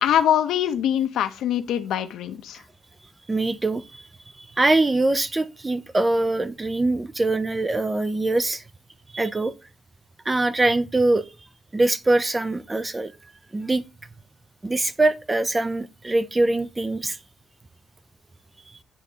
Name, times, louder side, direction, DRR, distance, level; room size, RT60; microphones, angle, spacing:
voice 1, 0.0-2.6, left 10 dB, 75° left, 0.7 m, -23 dB
voice 2, 3.3-4.0 4.4-8.6 9.1-9.5 10.3-11.3 11.7-13.1 13.5-13.8 14.6-17.2, right 2 dB, 15° right, 0.4 m, -23 dB
10.0 x 3.6 x 2.8 m
cardioid pair, 170°, 0 cm